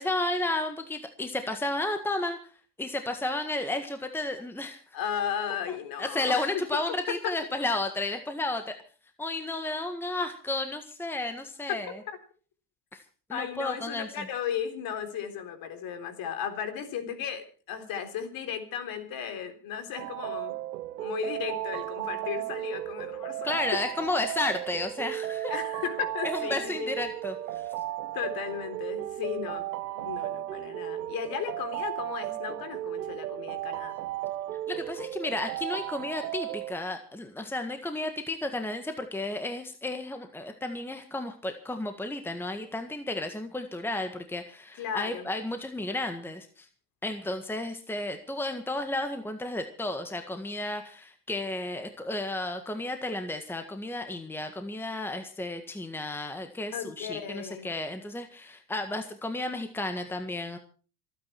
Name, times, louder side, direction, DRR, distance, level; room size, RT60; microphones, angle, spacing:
voice 1, 0.0-2.4 2.8-4.8 5.7-8.8 9.2-11.9 12.9-13.0 13.3-14.3 23.4-25.5 26.2-27.6 34.7-46.7 47.0-60.6, left 2 dB, 5° left, 7 dB, 1.7 m, -33 dB
voice 2, 4.9-6.6 7.2-7.3 12.1-12.2 13.3-20.6 21.0-23.8 25.5-26.9 28.1-29.7 30.0-34.0 44.8-45.3 56.7-57.7, left 8 dB, 45° left, 8 dB, 3.8 m, -35 dB
sound 1, 20.0-36.7, right 14 dB, 80° right, 0.9 m, -35 dB
26.5 x 9.5 x 4.5 m, 0.39 s
hypercardioid pair, 100°, 47 cm